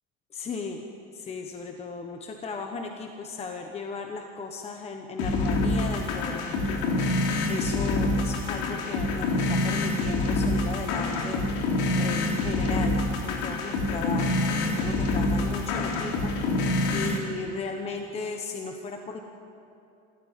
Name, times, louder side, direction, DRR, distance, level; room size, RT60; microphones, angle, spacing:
voice 1, 0.3-0.8 1.1-19.2, left 4 dB, 20° left, 4 dB, 1.1 m, -36 dB
sound 1, 5.2-17.2, left 2 dB, 85° left, 3.5 m, -26 dB
27.5 x 14.0 x 9.2 m, 2.7 s
cardioid pair, 175°, 29 cm